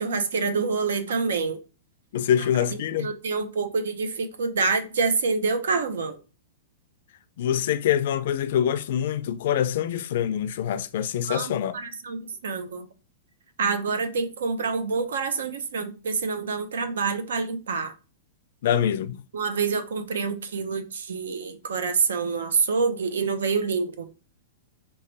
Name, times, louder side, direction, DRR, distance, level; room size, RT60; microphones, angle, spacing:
voice 1, 0.0-1.6 2.7-6.2 11.3-12.9 13.6-17.9 19.3-24.1, right 4 dB, 90° right, 0.6 m, -27 dB
voice 2, 2.1-3.1 7.4-11.8 18.6-19.2, left 9 dB, 55° left, 0.3 m, -25 dB
3.1 x 2.2 x 3.9 m
hypercardioid pair, 160°, 0 cm